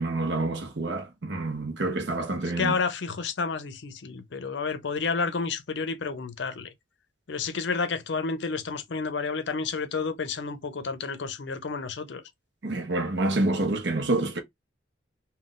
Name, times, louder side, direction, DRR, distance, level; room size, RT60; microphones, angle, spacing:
voice 1, 0.0-2.8 12.6-14.4, right 2 dB, 70° right, 0.7 m, -27 dB
voice 2, 2.6-6.7 7.3-12.2, left 4 dB, 70° left, 0.5 m, -30 dB
2.5 x 2.2 x 3.6 m
head